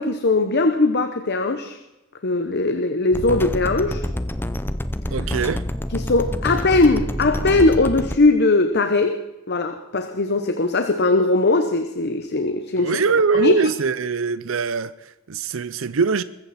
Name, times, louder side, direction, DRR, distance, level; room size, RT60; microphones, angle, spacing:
voice 1, 0.0-1.8 2.2-4.0 5.9-9.2 9.5-13.0 13.3-13.6, left 2 dB, 55° left, 1.0 m, -20 dB
sound 1, 3.1-8.2, left 1 dB, 10° left, 0.7 m, -27 dB
voice 2, 5.1-5.6 12.8-16.2, right 5 dB, 80° right, 0.6 m, -22 dB
21.0 x 15.0 x 4.3 m
head